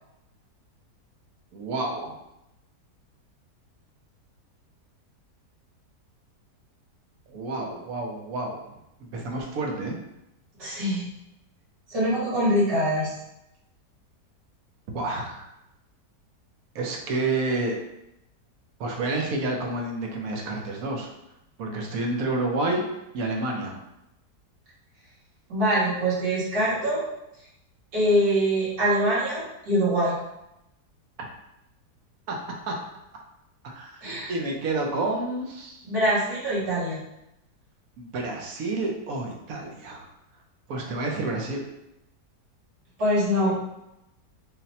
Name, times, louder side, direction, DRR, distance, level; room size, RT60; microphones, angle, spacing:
voice 1, 1.5-2.1 7.3-8.7 9.1-9.9 14.9-15.5 16.7-17.8 18.8-21.1 21.6-22.8 23.1-23.8 32.3-32.4 32.7-32.8 33.6-35.8 38.0-40.1 40.7-41.6, right 2 dB, 65° right, 1 dB, 1.1 m, -29 dB
voice 2, 10.6-11.1 11.9-13.1 25.5-27.0 27.9-30.1 34.0-34.3 35.8-37.0 43.0-43.6, equal, 85° right, -10 dB, 2.2 m, -24 dB
4.0 x 2.2 x 4.1 m, 0.87 s
omnidirectional pair, 1.8 m